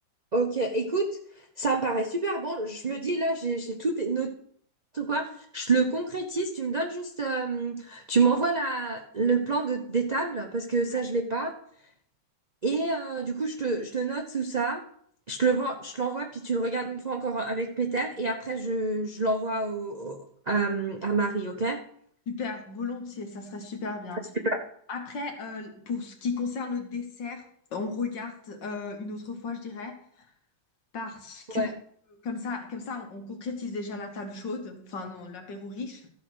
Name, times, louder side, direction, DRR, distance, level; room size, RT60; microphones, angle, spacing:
voice 1, 0.3-1.1 1.4-4.3 4.9-11.5 12.6-14.8 15.3-21.8 31.5-31.7, right 3 dB, 65° right, 3 dB, 0.4 m, -28 dB
voice 2, 22.3-24.2 24.9-30.3 30.9-31.8 32.1-36.1, left 4 dB, 65° left, 4 dB, 2.2 m, -35 dB
13.5 x 5.0 x 6.2 m, 0.65 s
omnidirectional pair, 2.1 m